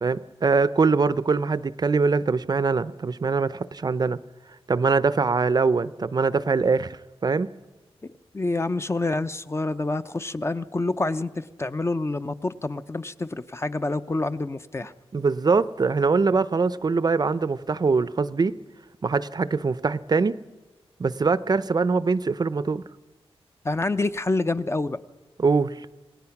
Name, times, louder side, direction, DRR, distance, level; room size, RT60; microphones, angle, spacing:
voice 1, 0.0-4.2 4.7-7.5 15.1-18.6 19.0-20.4 21.0-22.8 25.4-25.8, right 4 dB, 40° right, 0.6 m, -23 dB
voice 2, 8.0-14.9 23.6-25.0, left 2 dB, 25° left, 0.7 m, -27 dB
27.5 x 18.5 x 5.9 m
wide cardioid pair, 110°, 10 cm